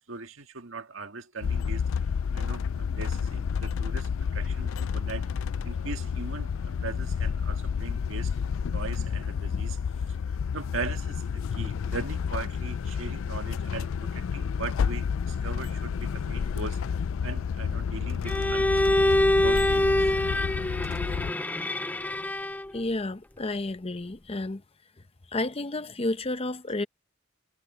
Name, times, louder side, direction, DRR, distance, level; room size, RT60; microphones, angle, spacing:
voice 1, 0.1-1.8 2.3-5.3 5.6-9.8 10.1-10.2 10.5-16.8 17.2-18.8 19.4-20.1, right 4 dB, 75° right, 1.8 m, -39 dB
sound 1, 1.4-21.3, left 6 dB, 75° left, 0.4 m, -30 dB
Bowed string instrument, 18.3-22.8, left 1 dB, 10° left, 0.4 m, -25 dB
voice 2, 22.7-24.6 25.3-26.9, left 2 dB, 30° left, 0.8 m, -31 dB
head